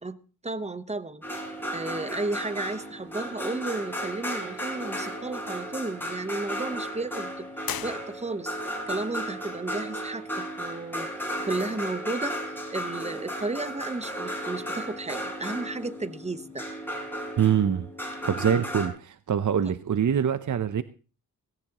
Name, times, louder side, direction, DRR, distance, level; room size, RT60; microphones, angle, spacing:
voice 1, 0.4-1.2 1.7-8.6 8.9-11.1 11.4-12.4 12.7-16.6 19.6-19.7, right 2 dB, 20° right, 13 dB, 1.0 m, -33 dB
sound 1, 1.2-18.9, equal, 5° left, 5.1 m, -34 dB
sound 2, 7.6-8.7, left 10 dB, 70° left, 0.8 m, -37 dB
voice 2, 17.4-17.9 18.2-20.8, right 8 dB, 55° right, 12 dB, 0.7 m, -24 dB
18.0 x 16.5 x 3.0 m, 0.36 s
wide cardioid pair, 125°, 37 cm